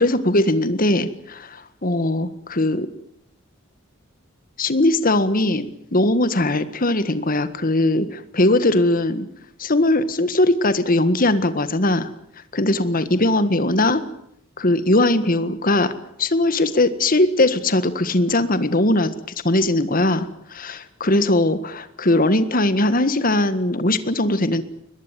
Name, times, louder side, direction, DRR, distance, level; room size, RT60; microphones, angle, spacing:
voice 1, 0.0-2.9 4.6-9.3 9.6-12.1 12.5-14.0 14.6-15.9 16.2-19.1 19.4-24.6, left 1 dB, 45° left, 13 dB, 1.7 m, -20 dB
22.0 x 20.5 x 9.2 m, 0.74 s
head